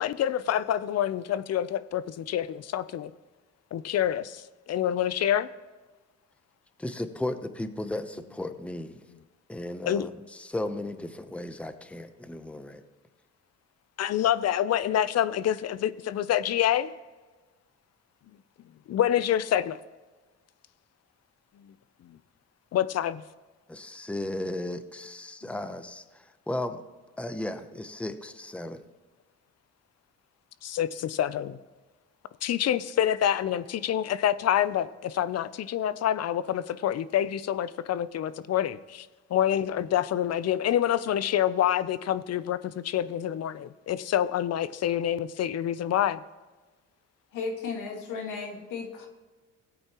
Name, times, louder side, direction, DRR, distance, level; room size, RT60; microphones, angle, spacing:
voice 1, 0.0-3.1 3.7-5.5 9.8-10.1 14.0-16.9 18.9-19.8 22.1-22.2 22.7-23.2 25.4-25.5 30.6-31.6 32.4-46.2, left 10 dB, 55° left, 16 dB, 0.6 m, -27 dB
voice 2, 6.8-9.0 9.5-12.8 23.7-26.8 27.2-28.8, left 1 dB, 5° left, 10 dB, 0.7 m, -35 dB
voice 3, 47.3-49.1, left 4 dB, 90° left, 2 dB, 1.9 m, -35 dB
17.0 x 8.7 x 3.0 m, 1.3 s
cardioid pair, 90°, 30 cm